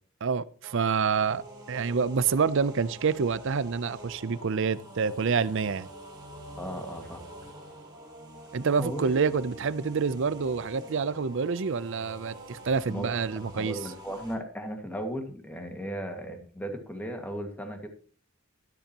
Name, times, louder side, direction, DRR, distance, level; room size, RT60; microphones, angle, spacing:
voice 1, 0.2-1.4 1.7-5.9 8.5-13.8, right 5 dB, 65° right, 0.6 m, -27 dB
sound 1, 0.6-14.3, right 1 dB, 20° right, 3.3 m, -46 dB
voice 2, 6.6-7.2 8.8-9.3 12.9-17.9, equal, 10° left, 1.9 m, -36 dB
13.0 x 12.0 x 2.9 m
head